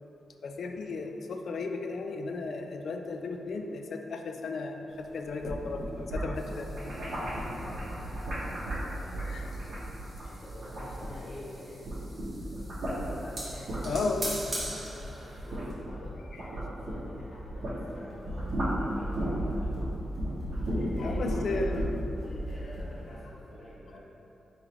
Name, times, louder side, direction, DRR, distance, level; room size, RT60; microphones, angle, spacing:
voice 1, 0.4-6.8 9.2-9.5 13.8-14.5 16.4-16.5 21.0-21.9, left 3 dB, 60° left, 4 dB, 0.3 m, -34 dB
sound 1, 5.2-11.5 11.7-17.8 18.1-22.9, right 1 dB, 55° right, 1.2 m, -34 dB
sound 2, 6.3-15.7, right 1 dB, 25° right, 1.3 m, -44 dB
voice 2, 7.0-8.3 8.9-9.8 10.2-11.9 12.9-14.0 14.5-19.8 20.6-21.9 22.1-24.0, left 1 dB, 30° left, -10 dB, 1.5 m, -47 dB
3.8 x 3.1 x 4.3 m, 2.8 s
wide cardioid pair, 155°, 0 cm